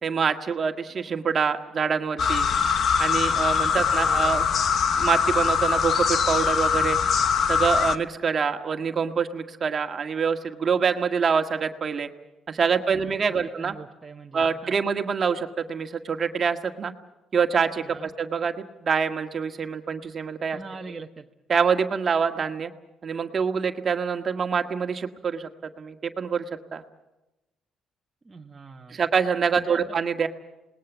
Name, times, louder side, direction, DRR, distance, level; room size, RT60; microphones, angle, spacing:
voice 1, 0.0-2.4 3.0-4.4 5.0-7.0 7.5-12.1 12.5-13.7 14.3-16.9 17.3-20.6 21.5-22.7 23.0-26.4 26.7-26.8 28.9-30.3, right 6 dB, 40° right, 6 dB, 1.7 m, -25 dB
sound 1, 2.2-8.0, left 6 dB, 55° left, 1.0 m, -22 dB
voice 2, 3.7-4.6 12.8-14.7 17.8-18.1 20.5-21.3 28.2-29.0 29.5-29.8, right 4 dB, 20° right, 0 dB, 1.4 m, -42 dB
28.0 x 20.0 x 7.3 m, 1.0 s
cardioid pair, 115°, 0 cm